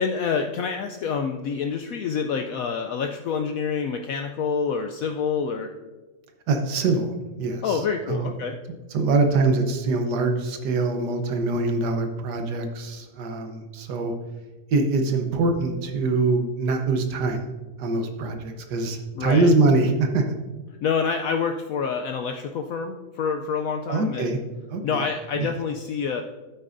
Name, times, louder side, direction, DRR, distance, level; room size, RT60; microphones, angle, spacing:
voice 1, 0.0-5.7 7.6-8.6 19.1-19.5 20.8-24.4 24.8-26.2, left 6 dB, 70° left, 5 dB, 0.9 m, -27 dB
voice 2, 6.5-8.3 8.9-14.1 14.7-17.5 17.8-20.3 23.9-24.4 24.7-25.0 25.3-25.5, right 3 dB, 85° right, 5 dB, 1.6 m, -24 dB
12.0 x 8.3 x 2.6 m, 1.2 s
omnidirectional pair, 1.7 m